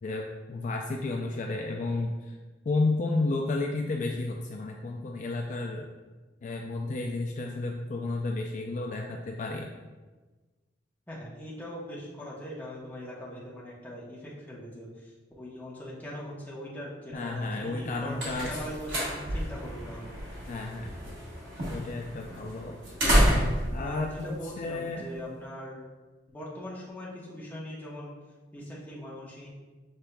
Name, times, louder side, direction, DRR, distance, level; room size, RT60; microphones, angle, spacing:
voice 1, 0.0-2.4 2.7-5.9 6.4-9.7 17.1-18.6 20.5-21.0 21.7-22.8 23.3-25.2, left 2 dB, 45° left, 1 dB, 0.3 m, -32 dB
voice 2, 11.1-18.2 18.5-20.1 23.7-25.8 26.3-28.1 28.5-29.5, equal, 10° left, -6 dB, 1.0 m, -41 dB
sound 1, 17.7-25.2, equal, 75° right, 1.4 m, -30 dB
6.6 x 3.5 x 2.2 m, 1.3 s
head